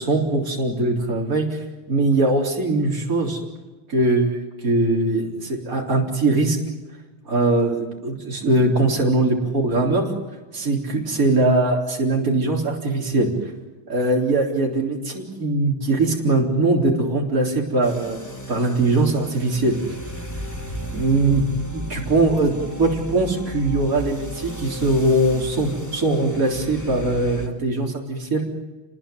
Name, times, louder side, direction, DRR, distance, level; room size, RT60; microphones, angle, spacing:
voice 1, 0.0-1.6 1.9-3.4 3.9-6.6 7.3-10.1 10.5-13.3 13.9-19.8 20.9-21.4 21.7-28.4, right 2 dB, 40° right, -1 dB, 4.4 m, -21 dB
sound 1, 17.8-27.5, equal, 10° left, 2.9 m, -34 dB
29.5 x 20.0 x 9.4 m, 1.2 s
omnidirectional pair, 2.2 m